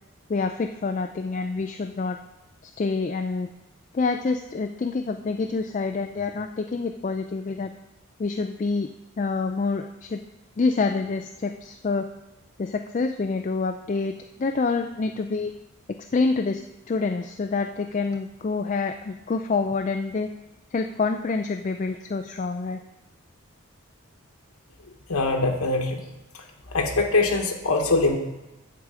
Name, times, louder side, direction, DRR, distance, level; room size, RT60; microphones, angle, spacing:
voice 1, 0.3-2.2 2.8-3.5 3.9-7.7 8.2-8.9 9.2-10.2 10.6-12.1 12.6-14.1 14.4-15.5 16.1-20.3 20.7-22.8, left 4 dB, 35° left, 6 dB, 0.3 m, -27 dB
voice 2, 25.1-26.0 26.7-28.2, left 3 dB, 90° left, 2 dB, 1.0 m, -22 dB
8.3 x 4.8 x 7.4 m, 1.0 s
head